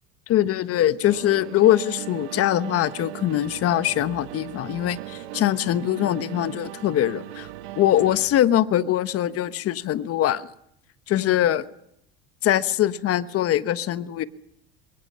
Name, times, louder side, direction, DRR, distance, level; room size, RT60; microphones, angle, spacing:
voice 1, 0.3-7.5 7.8-10.5 11.1-11.7 12.4-14.2, left 12 dB, 45° left, 14 dB, 1.2 m, -22 dB
sound 1, 1.0-8.3, right 14 dB, 80° right, 2.3 m, -38 dB
27.5 x 22.0 x 5.7 m, 0.75 s
supercardioid pair, 100°, 32 cm